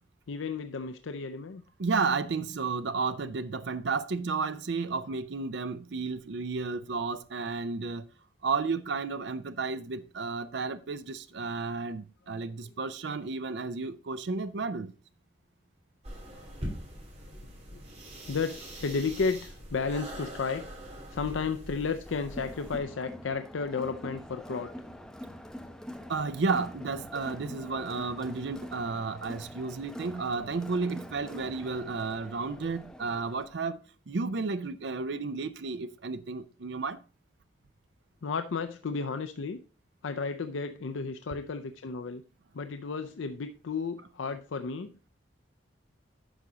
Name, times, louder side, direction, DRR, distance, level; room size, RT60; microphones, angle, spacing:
voice 1, 0.3-1.6 12.6-12.7 16.3-16.7 17.7-17.8 18.3-20.7 21.1-24.7 38.2-39.6 40.0-42.2 42.5-44.9, left 4 dB, 85° left, 0.5 m, -33 dB
voice 2, 1.8-8.0 8.4-14.9 26.1-33.8 34.1-37.0, right 4 dB, 65° right, 0.5 m, -32 dB
sound 1, 16.0-22.8, right 1 dB, 35° right, 2.8 m, -43 dB
Crowd, 22.1-33.6, equal, 5° left, 0.8 m, -45 dB
10.0 x 6.1 x 3.9 m
head